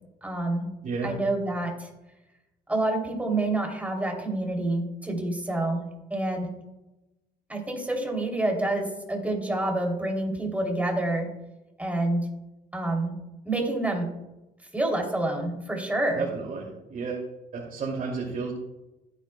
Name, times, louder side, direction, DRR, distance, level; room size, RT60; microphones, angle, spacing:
voice 1, 0.2-0.7 1.0-1.9 2.7-5.8 6.1-6.5 7.5-11.3 11.8-12.3 12.7-13.1 13.4-14.1 14.7-16.3, right 2 dB, 10° right, 1 dB, 3.1 m, -27 dB
voice 2, 0.8-1.1 16.1-17.2 17.5-18.5, right 4 dB, 50° right, -3 dB, 2.7 m, -32 dB
16.5 x 9.0 x 2.3 m, 0.99 s
cardioid pair, 110°, 17 cm